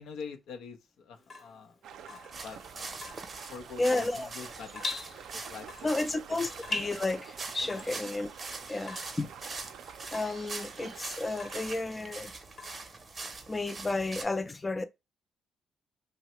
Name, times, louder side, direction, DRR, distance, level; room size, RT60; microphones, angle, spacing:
voice 1, 0.0-3.0 3.5-4.9 5.1-5.7 5.9-6.0 6.3-6.4 7.6-7.8, left 6 dB, 85° left, 0.5 m, -45 dB
Water tap faucet / Drip, 1.2-13.3, left 3 dB, 40° left, 0.9 m, -43 dB
sound 1, 1.8-11.7, right 8 dB, 80° right, 0.4 m, -49 dB
sound 2, 2.3-14.2, right 3 dB, 35° right, 0.6 m, -43 dB
voice 2, 3.8-4.3 5.8-8.3 8.7-9.3 10.1-12.3 13.5-14.8, left 2 dB, 20° left, 0.3 m, -32 dB
2.8 x 2.0 x 2.9 m
cardioid pair, 90°, 0 cm